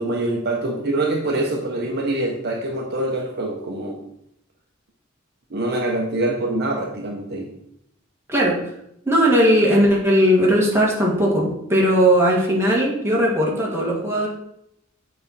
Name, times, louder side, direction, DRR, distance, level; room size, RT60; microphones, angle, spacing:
voice 1, 0.0-4.1 5.5-7.5, right 2 dB, 55° right, 1 dB, 0.9 m, -24 dB
voice 2, 9.0-14.3, equal, 15° right, -4 dB, 1.8 m, -18 dB
7.5 x 4.3 x 4.1 m, 0.77 s
head